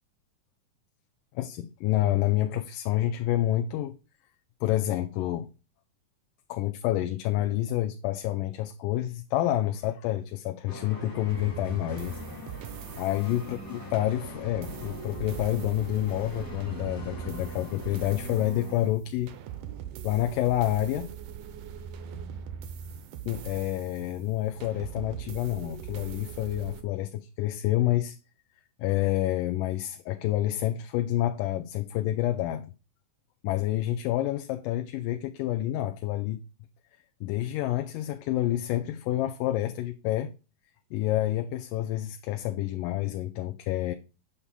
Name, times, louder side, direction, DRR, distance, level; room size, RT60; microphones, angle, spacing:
voice 1, 1.3-4.0 4.6-5.5 6.5-12.1 13.0-19.3 20.0-21.1 23.2-28.2 28.8-32.7 33.4-36.4 37.2-40.3 40.9-43.9, left 14 dB, 90° left, 2.2 m, -28 dB
sound 1, 10.7-18.9, equal, 10° left, 1.7 m, -42 dB
sound 2, 11.3-26.8, right 8 dB, 85° right, 2.4 m, -41 dB
8.2 x 7.2 x 2.2 m
omnidirectional pair, 3.7 m